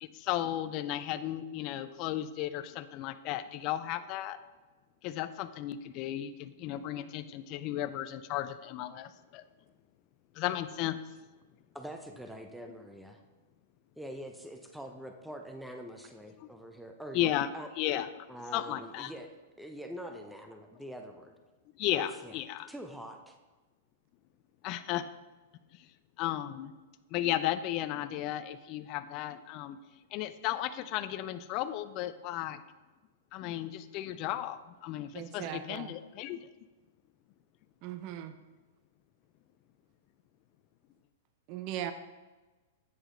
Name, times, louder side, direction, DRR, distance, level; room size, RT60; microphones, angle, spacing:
voice 1, 0.0-4.4 5.0-9.4 10.4-11.0 16.4-16.5 17.1-17.5 17.8-18.3 18.5-19.1 21.8-22.7 24.6-25.1 26.2-26.7 27.1-29.8 30.1-32.6 33.3-36.5, left 13 dB, 40° left, 12 dB, 0.4 m, -34 dB
voice 2, 11.7-13.2 14.0-17.3 17.5-17.7 18.3-21.3 22.0-22.3 22.7-23.4, equal, ahead, 4 dB, 0.6 m, -44 dB
voice 3, 35.1-35.9 37.8-38.3 41.5-41.9, right 11 dB, 45° right, 10 dB, 0.5 m, -38 dB
8.3 x 4.9 x 3.8 m, 1.2 s
hypercardioid pair, 125°, 0 cm